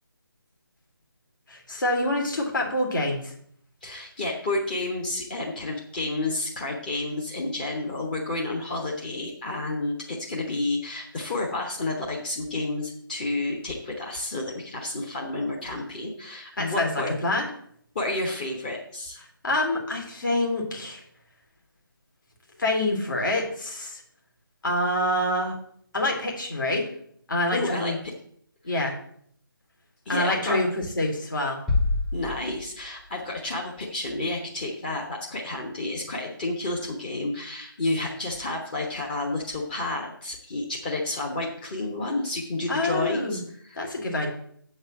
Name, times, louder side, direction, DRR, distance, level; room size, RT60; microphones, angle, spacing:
voice 1, 1.5-3.3 16.6-17.5 19.4-21.0 22.6-24.0 24.6-25.5 25.9-26.9 27.3-27.9 28.6-28.9 30.1-31.6 42.7-43.4 43.7-44.3, left 1 dB, 60° left, 0 dB, 3.1 m, -26 dB
voice 2, 3.8-17.1 17.9-19.2 27.5-28.1 30.1-30.6 32.1-43.8, left 2 dB, 25° left, -2 dB, 1.1 m, -30 dB
sound 1, 31.7-33.2, left 2 dB, ahead, 0.5 m, -27 dB
7.7 x 5.4 x 7.5 m, 0.64 s
figure-of-eight pair, 155°, 12 cm